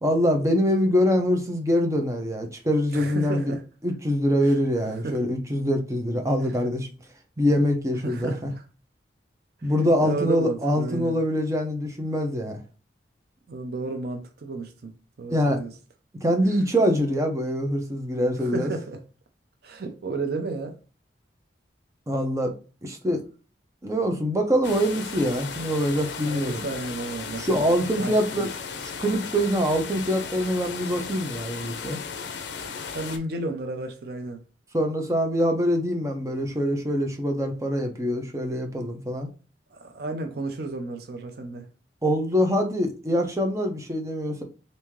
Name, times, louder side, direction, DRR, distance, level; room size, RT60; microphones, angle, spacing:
voice 1, 0.0-3.5 3.8-6.9 7.4-8.5 9.6-12.6 15.3-15.6 16.2-18.7 22.1-22.5 22.8-23.2 23.8-26.6 27.4-28.5 28.8-32.0 34.7-39.3 42.0-44.4, equal, 15° right, 0.6 m, -24 dB
voice 2, 2.9-3.6 4.4-4.5 5.0-5.2 8.0-8.6 9.6-9.7 10.0-11.2 13.5-14.9 15.2-15.7 18.4-19.0 19.6-20.8 26.2-27.6 28.0-28.5 32.9-34.4 38.8-38.9 39.7-41.7, right 3 dB, 60° right, 0.5 m, -32 dB
sound 1, 24.6-33.2, left 6 dB, 75° left, 0.5 m, -36 dB
3.5 x 2.7 x 3.0 m
head